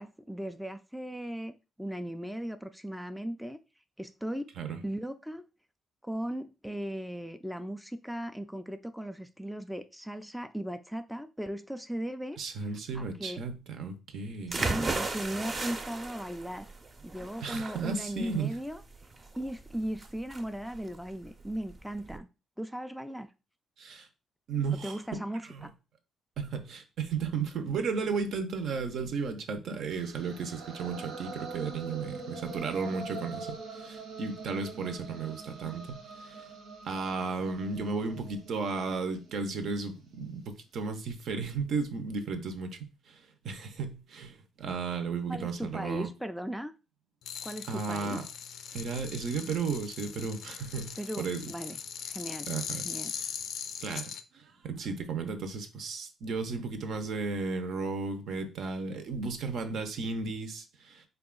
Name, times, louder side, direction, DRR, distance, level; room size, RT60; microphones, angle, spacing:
voice 1, 0.0-3.6 4.0-4.5 4.8-5.5 6.0-12.4 12.9-13.4 14.5-16.7 17.0-18.8 19.4-22.3 22.6-23.3 24.7-25.7 45.3-46.7 47.4-48.2 51.0-51.8 52.1-52.5 52.8-53.1, equal, ahead, 0.3 m, -37 dB
voice 2, 12.4-14.7 17.4-18.5 23.8-24.1 24.5-25.0 25.4-25.6 26.4-36.5 36.8-42.8 43.1-46.1 47.7-48.2 48.7-51.5 52.5-52.9 53.1-53.3 53.8-61.0, right 4 dB, 70° right, 0.7 m, -34 dB
sound 1, 14.5-22.2, right 3 dB, 35° right, 0.6 m, -36 dB
sound 2, 29.9-40.0, right 4 dB, 90° right, 1.0 m, -44 dB
sound 3, 47.2-54.2, left 8 dB, 75° left, 0.4 m, -40 dB
3.9 x 2.3 x 3.7 m
cardioid pair, 90°, 0 cm